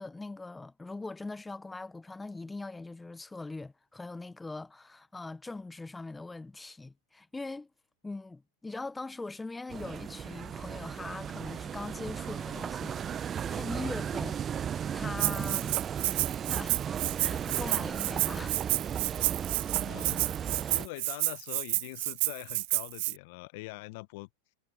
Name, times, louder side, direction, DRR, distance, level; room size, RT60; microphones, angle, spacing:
voice 1, 0.0-7.7 8.0-14.4 14.9-15.8 16.5-16.8 17.2-18.7, left 3 dB, 10° left, 0.8 m, -41 dB
sound 1, 9.7-20.9, right 8 dB, 25° right, 0.7 m, -35 dB
Rattle (instrument), 15.2-23.1, right 25 dB, 55° right, 0.3 m, -30 dB
voice 2, 19.6-24.3, left 24 dB, 55° left, 0.9 m, -44 dB
hypercardioid pair, 95°, 0 cm